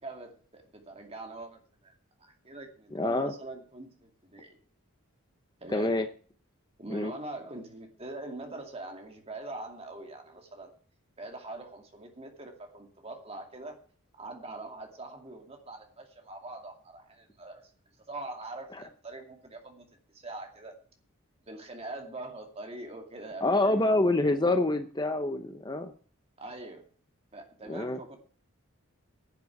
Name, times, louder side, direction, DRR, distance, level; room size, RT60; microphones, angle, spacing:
voice 1, 0.0-1.9 2.2-4.6 5.6-5.9 6.8-10.7 11.2-13.8 14.1-17.7 18.0-20.8 21.4-23.9 26.4-26.9 27.3-28.2, right 2 dB, 25° right, 3 dB, 2.4 m, -43 dB
voice 2, 2.9-3.3 5.7-6.1 6.9-7.1 23.4-25.9 27.7-28.0, left 2 dB, 20° left, 8 dB, 0.7 m, -26 dB
11.0 x 7.5 x 8.4 m, 0.43 s
head